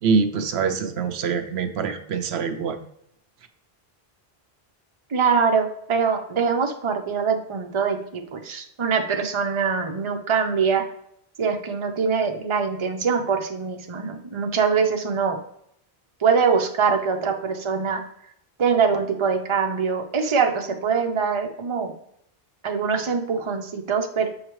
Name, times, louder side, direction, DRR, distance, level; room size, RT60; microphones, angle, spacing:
voice 1, 0.0-2.8, right 5 dB, 90° right, 7 dB, 0.9 m, -24 dB
voice 2, 5.1-10.8 11.4-15.4 16.2-18.0 18.6-21.9 22.6-24.3, right 5 dB, 35° right, 4 dB, 0.7 m, -23 dB
7.2 x 4.9 x 3.1 m, 0.72 s
omnidirectional pair, 1.0 m